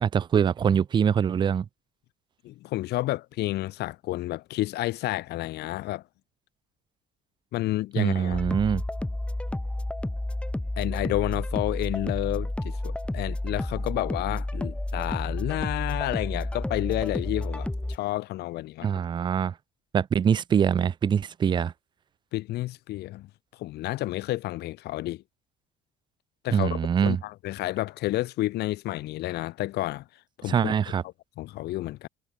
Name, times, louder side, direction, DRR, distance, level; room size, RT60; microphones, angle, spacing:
voice 1, 0.0-1.7 8.0-8.8 18.8-19.5 19.9-21.7 26.5-27.2 30.5-31.0, right 8 dB, 25° right, 0.3 m, -24 dB
voice 2, 2.4-6.0 7.5-8.4 10.8-18.9 22.3-23.3 23.5-25.2 26.4-30.0 30.4-30.7 31.4-32.1, left 16 dB, 75° left, 1.1 m, -30 dB
sound 1, 8.3-18.0, left 1 dB, 5° left, 1.0 m, -31 dB
cardioid pair, 110°, 17 cm